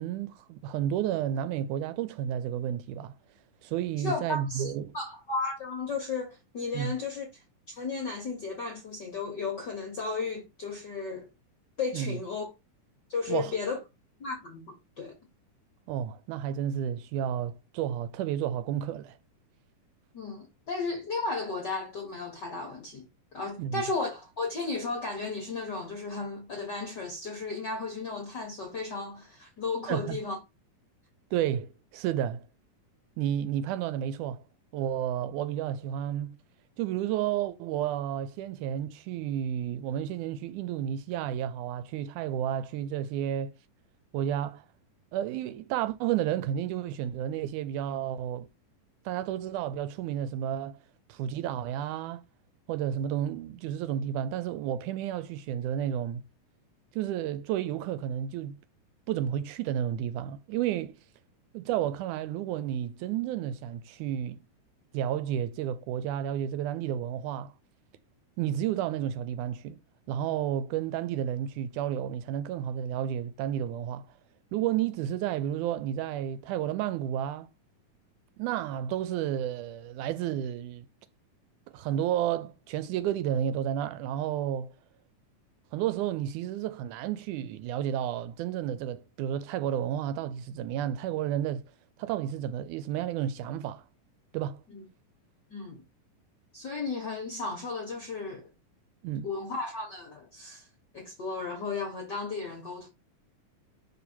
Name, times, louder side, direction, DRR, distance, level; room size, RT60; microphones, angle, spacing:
voice 1, 0.0-3.1 3.6-4.9 6.7-6.9 11.9-12.2 13.3-13.6 15.9-19.2 23.6-23.8 29.9-30.2 31.3-32.5 33.2-34.4 34.7-36.4 36.8-43.5 44.1-44.6 45.1-48.5 49.1-50.8 51.1-52.2 52.7-56.2 56.9-58.6 59.1-61.0 61.5-64.4 64.9-67.5 68.4-69.8 70.1-74.1 74.5-77.5 78.4-80.9 81.7-84.7 85.7-91.6 92.0-93.8 94.3-94.6 99.0-99.3, right 10 dB, 80° right, 1.9 m, -31 dB
voice 2, 4.0-7.3 7.7-11.3 11.8-12.5 13.1-13.8 14.2-14.6 15.0-15.1 20.1-23.0 23.3-30.4 94.7-94.8 95.5-95.8 96.5-98.5 99.2-100.7 100.9-102.9, left 4 dB, 60° left, 1.1 m, -34 dB
5.7 x 4.1 x 4.3 m
omnidirectional pair, 3.7 m